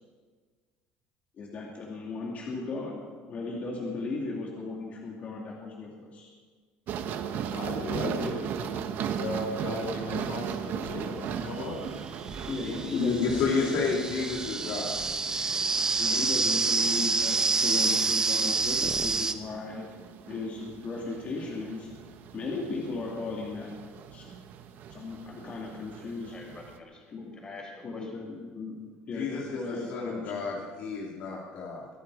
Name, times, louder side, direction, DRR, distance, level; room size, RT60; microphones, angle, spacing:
voice 1, 1.4-3.0 3.3-6.3 7.9-8.3 12.5-13.7 14.6-14.8 16.0-19.9 20.3-21.9 22.3-24.4 24.9-26.4 27.1-27.3 27.8-28.8 29.1-30.3, left 3 dB, 40° left, -2 dB, 2.7 m, -36 dB
sound 1, 6.9-26.8, right 8 dB, 55° right, 1.2 m, -38 dB
voice 2, 7.5-8.8 9.2-11.9, left 2 dB, 90° left, 1 dB, 4.6 m, -36 dB
sound 2, 11.9-19.3, right 4 dB, 20° right, 0.9 m, -28 dB
voice 3, 12.9-15.0 29.1-31.9, left 5 dB, 65° left, -3 dB, 2.6 m, -30 dB
voice 4, 26.0-28.1, left 3 dB, 20° left, 1 dB, 4.6 m, -47 dB
23.0 x 11.5 x 4.9 m, 1.5 s
cardioid pair, 130°, 4 cm